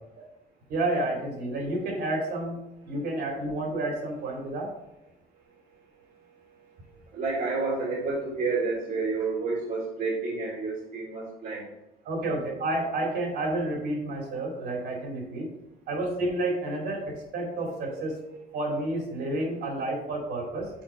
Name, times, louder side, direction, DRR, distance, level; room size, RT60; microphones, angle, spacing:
voice 1, 0.7-2.6 2.9-4.7 12.0-15.5 15.9-18.2 18.5-20.7, right 2 dB, 75° right, 0 dB, 2.5 m, -30 dB
voice 2, 5.8-11.7 17.5-18.0 18.5-19.6, right 4 dB, 55° right, -4 dB, 1.7 m, -32 dB
6.0 x 4.3 x 4.8 m, 0.88 s
cardioid pair, 110°, 17 cm